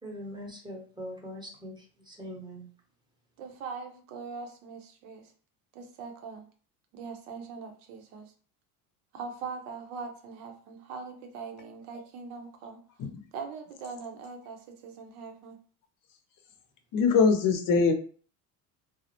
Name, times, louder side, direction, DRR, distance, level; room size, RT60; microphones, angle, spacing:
voice 1, 0.0-2.6, equal, 10° right, -1 dB, 0.7 m, -42 dB
voice 2, 3.4-5.3 5.7-6.5 6.9-8.3 9.1-12.8 13.3-15.6, right 5 dB, 90° right, 5 dB, 0.7 m, -41 dB
voice 3, 16.9-17.9, left 5 dB, 45° left, 5 dB, 0.6 m, -22 dB
2.3 x 2.0 x 2.8 m, 0.42 s
supercardioid pair, 90°, 45 cm